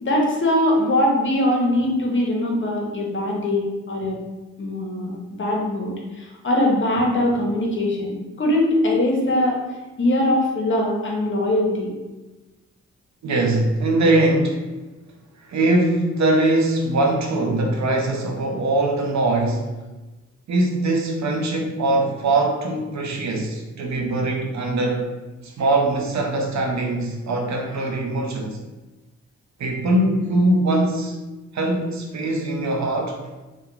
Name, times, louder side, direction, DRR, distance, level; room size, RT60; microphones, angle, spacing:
voice 1, 0.0-4.2 4.6-9.6 10.0-11.9, left 1 dB, 40° left, -1 dB, 0.7 m, -21 dB
voice 2, 13.2-14.7 15.4-19.8 20.5-25.1 25.4-28.6 29.6-31.2 31.5-33.2, right 2 dB, 65° right, 1 dB, 0.6 m, -21 dB
2.3 x 2.2 x 3.0 m, 1.1 s
cardioid pair, 65°, 30 cm